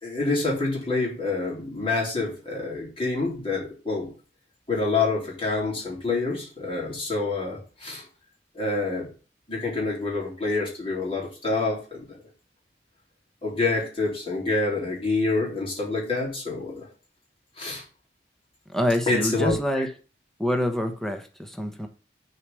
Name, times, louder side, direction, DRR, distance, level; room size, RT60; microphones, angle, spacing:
voice 1, 0.0-4.1 4.7-8.0 8.5-9.1 9.5-12.2 13.4-16.9 17.6-17.8 19.1-19.9, left 3 dB, 35° left, -4 dB, 3.7 m, -27 dB
voice 2, 18.7-19.9 20.4-21.9, equal, ahead, 5 dB, 1.1 m, -26 dB
6.7 x 4.8 x 6.9 m, 0.36 s
head